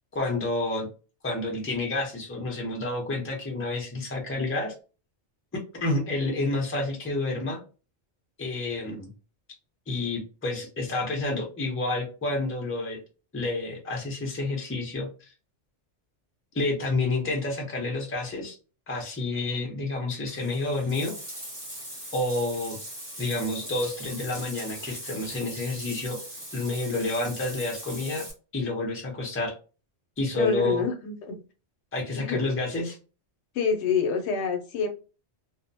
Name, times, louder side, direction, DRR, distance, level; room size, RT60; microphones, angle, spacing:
voice 1, 0.1-0.9 1.2-4.7 5.7-7.6 8.4-9.1 9.9-13.0 13.3-15.3 16.5-18.6 18.9-21.1 22.1-22.8 23.2-26.2 26.5-28.3 28.5-29.5 30.2-30.8 31.9-33.0, left 2 dB, 15° left, 1 dB, 0.5 m, -29 dB
Bathtub (filling or washing), 20.3-28.3, equal, 25° right, 0.8 m, -40 dB
voice 2, 30.3-31.4 32.2-32.4 33.5-34.9, left 5 dB, 75° left, 5 dB, 0.8 m, -27 dB
2.6 x 2.1 x 2.6 m, 0.34 s
omnidirectional pair, 1.2 m